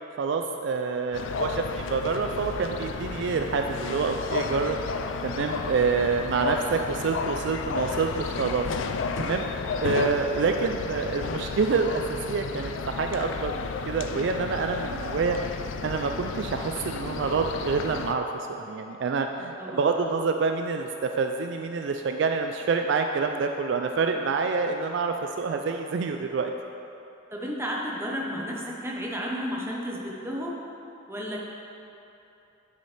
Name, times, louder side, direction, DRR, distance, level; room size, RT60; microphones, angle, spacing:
voice 1, 0.2-4.8 5.2-8.6 9.2-9.5 9.8-15.4 15.8-18.3 18.6-26.5, right 4 dB, 60° right, 5 dB, 0.3 m, -27 dB
sound 1, 1.1-18.1, left 5 dB, 70° left, 0.3 m, -33 dB
voice 2, 19.5-19.9 27.3-30.6 31.1-31.4, equal, 10° right, -3 dB, 0.8 m, -32 dB
9.3 x 6.8 x 3.3 m, 2.9 s
head